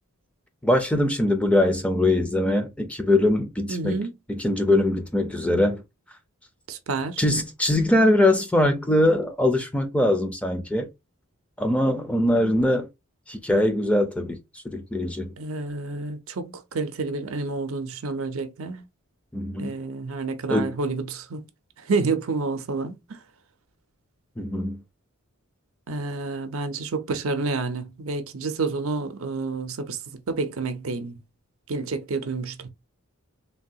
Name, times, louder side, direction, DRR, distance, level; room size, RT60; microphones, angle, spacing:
voice 1, 0.6-4.0 4.3-5.8 7.2-10.9 11.6-12.9 13.3-14.4 14.6-15.3 19.3-19.7 20.5-20.7 24.4-24.8, left 1 dB, 5° left, 0.5 m, -22 dB
voice 2, 3.7-4.1 6.7-7.2 15.4-18.9 19.6-21.4 21.9-23.2 25.9-30.0 30.3-31.2 31.7-32.7, right 3 dB, 70° right, 0.5 m, -29 dB
3.3 x 2.3 x 2.7 m
head